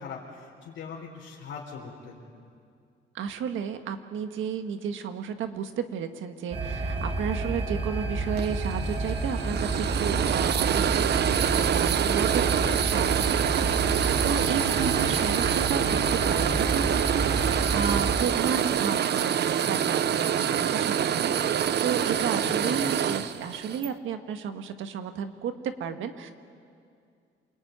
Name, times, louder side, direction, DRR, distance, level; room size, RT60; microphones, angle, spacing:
voice 1, 0.0-2.2 12.1-13.0 22.3-23.2, left 6 dB, 80° left, -5 dB, 4.2 m, -41 dB
voice 2, 3.1-26.3, right 7 dB, 80° right, 7 dB, 1.6 m, -33 dB
sound 1, 6.5-18.2, right 3 dB, 35° right, 6.0 m, -30 dB
sound 2, 8.4-23.9, right 9 dB, 60° right, 0.9 m, -26 dB
28.0 x 20.5 x 9.5 m, 2.3 s
cardioid pair, 90°, 20 cm